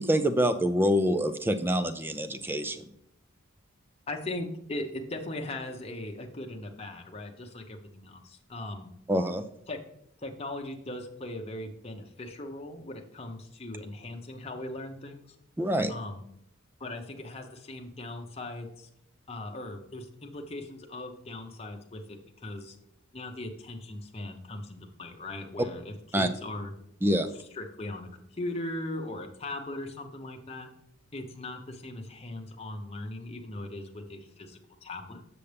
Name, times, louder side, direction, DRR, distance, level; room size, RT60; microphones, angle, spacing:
voice 1, 0.0-2.8 9.1-9.5 15.6-15.9 26.1-26.3 27.0-27.3, equal, 10° right, 10 dB, 0.4 m, -26 dB
voice 2, 4.1-8.9 9.7-9.8 10.2-15.3 15.9-16.2 16.8-18.9 19.3-22.8 23.1-26.7 27.3-30.7 31.1-35.2, left 1 dB, 30° left, 2 dB, 0.8 m, -39 dB
6.9 x 6.7 x 3.4 m, 0.75 s
head